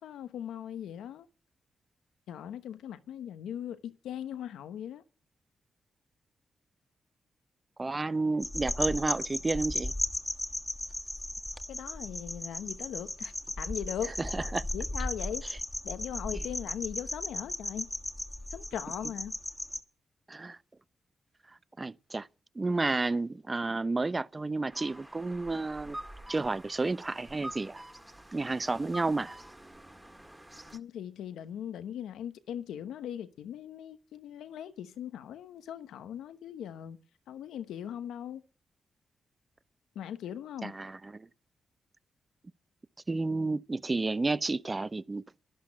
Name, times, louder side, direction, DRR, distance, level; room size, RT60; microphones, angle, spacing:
voice 1, 0.0-1.3 2.3-5.0 11.7-14.1 14.7-15.5 15.8-17.9 18.5-19.3 30.7-37.0 37.3-38.4 39.9-40.8, left 9 dB, 85° left, 1.0 m, -39 dB
voice 2, 7.8-9.9 14.2-14.7 20.3-20.6 21.8-22.3 22.5-26.0 26.3-27.8 28.3-29.4 40.6-41.3 43.1-45.2, right 3 dB, 30° right, 0.8 m, -31 dB
sound 1, 8.4-19.8, left 1 dB, 15° left, 1.8 m, -36 dB
sound 2, 24.7-30.8, right 1 dB, 10° right, 2.0 m, -47 dB
12.0 x 11.5 x 7.5 m
supercardioid pair, 50°, 0 cm